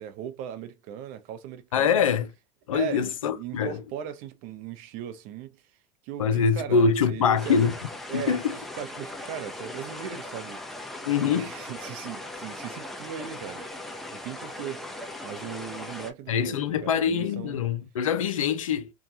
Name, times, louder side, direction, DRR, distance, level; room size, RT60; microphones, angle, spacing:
voice 1, 0.0-2.0 2.7-5.6 6.0-7.6 8.1-8.4 8.8-10.6 11.2-14.9 15.2-17.6, right 9 dB, 60° right, 0.6 m, -38 dB
voice 2, 1.7-2.3 2.7-3.8 6.2-7.7 8.1-8.6 11.0-11.5 16.3-18.9, left 6 dB, 90° left, 0.4 m, -24 dB
sound 1, 7.4-16.1, left 1 dB, ahead, 0.6 m, -39 dB
2.8 x 2.2 x 2.7 m
hypercardioid pair, 80°, 16 cm